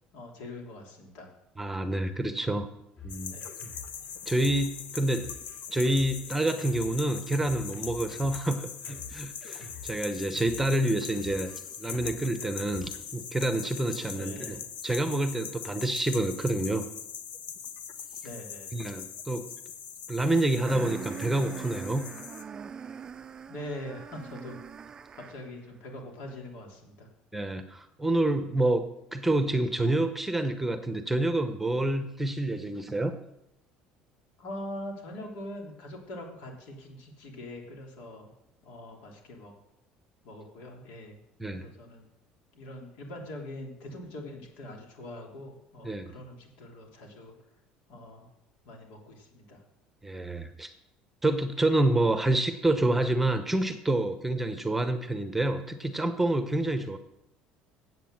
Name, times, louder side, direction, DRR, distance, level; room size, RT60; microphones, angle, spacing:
voice 1, 0.1-1.3 3.3-3.4 14.1-14.6 18.2-18.8 23.5-24.5 25.1-27.1 34.4-38.3 38.6-39.5 40.2-41.2 41.5-42.1 42.5-47.3 47.9-48.2 48.6-49.6, left 1 dB, 75° left, 1 dB, 3.3 m, -43 dB
voice 2, 1.6-2.7 3.0-3.3 4.3-5.3 5.7-11.5 11.8-16.8 18.7-19.5 20.1-22.0 27.3-33.2 41.4-41.7 45.8-46.1 50.0-50.7 51.2-57.0, right 1 dB, 5° right, 8 dB, 0.9 m, -28 dB
Drum kit, 3.0-13.0, left 3 dB, 40° left, 3.0 m, -48 dB
sound 1, 3.1-22.4, left 8 dB, 60° left, 1.0 m, -42 dB
sound 2, 20.7-25.6, right 6 dB, 25° right, 0.4 m, -42 dB
9.2 x 7.9 x 7.7 m, 0.82 s
cardioid pair, 125°, 3 cm